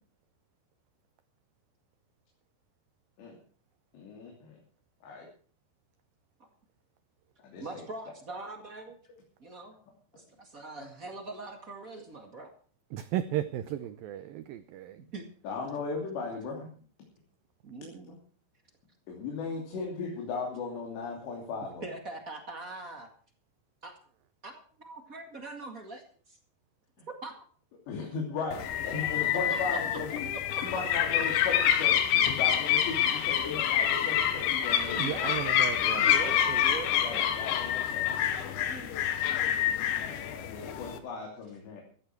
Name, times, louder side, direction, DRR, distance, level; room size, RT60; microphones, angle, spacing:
voice 1, 3.9-4.6 5.0-5.3 7.4-7.8 15.4-16.7 18.1-18.2 19.1-21.9 27.9-30.3 30.6-32.0 32.4-35.4 37.0-38.2 39.1-39.5 40.3-41.8, left 4 dB, 70° left, 5.1 m, -37 dB
voice 2, 7.6-9.0 9.4-9.7 10.1-12.5 15.1-15.2 17.6-18.2 21.8-23.1 23.8-23.9 24.4-24.5 24.8-26.0 27.2-27.3 29.5-30.6 34.6-35.2 36.0-37.2 38.7-39.0, right 3 dB, 50° right, 1.0 m, -42 dB
voice 3, 12.9-15.0 35.0-36.6, right 12 dB, 85° right, 2.0 m, -35 dB
sound 1, 28.5-41.0, left 10 dB, 85° left, 3.7 m, -27 dB
16.0 x 13.5 x 4.6 m
omnidirectional pair, 5.2 m